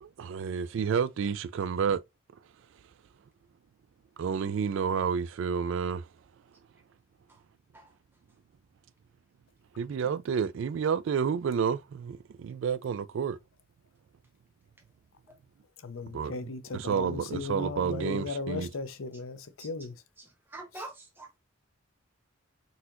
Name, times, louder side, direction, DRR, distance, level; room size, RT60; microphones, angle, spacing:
voice 1, 0.0-2.0 4.2-6.1 9.8-13.4 16.1-16.4 16.7-18.7, right 6 dB, 65° right, 0.3 m, -30 dB
voice 2, 15.8-20.0, left 4 dB, 85° left, 0.6 m, -37 dB
voice 3, 20.2-21.4, right 2 dB, 10° right, 0.9 m, -45 dB
4.0 x 2.8 x 2.5 m
head